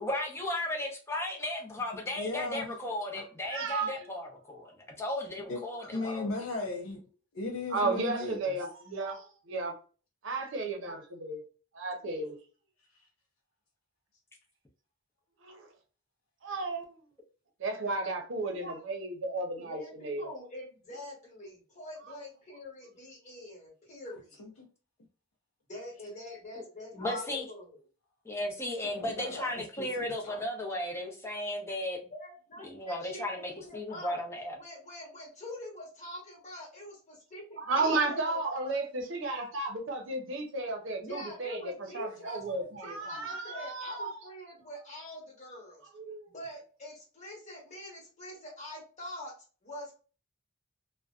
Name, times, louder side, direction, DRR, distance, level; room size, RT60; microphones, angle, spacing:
voice 1, 0.0-4.7 5.0-6.3 26.6-26.7 26.9-27.5 28.2-32.0 32.6-34.6, left 1 dB, 15° left, 0.6 m, -35 dB
voice 2, 2.2-2.7 5.5-7.0 7.3-8.5 24.4-24.5 28.8-30.4, left 2 dB, 75° left, 0.5 m, -37 dB
voice 3, 3.5-4.1 7.7-9.7 10.2-11.4 11.7-12.4 15.4-15.7 16.4-17.0 17.6-20.3 37.6-41.6 41.9-44.2 45.9-46.3, right 3 dB, 65° right, 0.6 m, -33 dB
voice 4, 19.6-24.4 25.7-27.8 32.1-34.2 34.6-38.4 41.0-45.8 46.3-49.3 49.6-50.0, left 1 dB, 35° left, 1.1 m, -45 dB
2.5 x 2.1 x 2.3 m
head